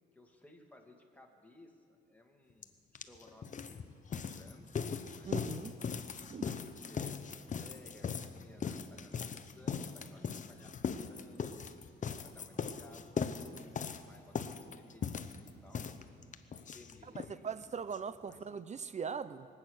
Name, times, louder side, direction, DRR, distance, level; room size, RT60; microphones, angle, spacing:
voice 1, 0.1-2.8 3.0-4.7 5.1-5.4 5.7-5.8 6.0-7.2 7.6-11.6 12.1-13.1 14.0-16.0 16.7-17.5 18.2-18.4, left 2 dB, 5° left, 1 dB, 2.1 m, -59 dB
sound 1, 2.6-2.7 3.0-17.3 17.6-17.7 17.9-18.0 18.3-18.4, left 6 dB, 40° left, 0.8 m, -39 dB
voice 2, 5.2-5.7 6.3-6.5 17.2-19.5, right 6 dB, 35° right, 14 dB, 0.6 m, -40 dB
23.5 x 8.8 x 6.4 m, 2.4 s
cardioid pair, 90°, 20 cm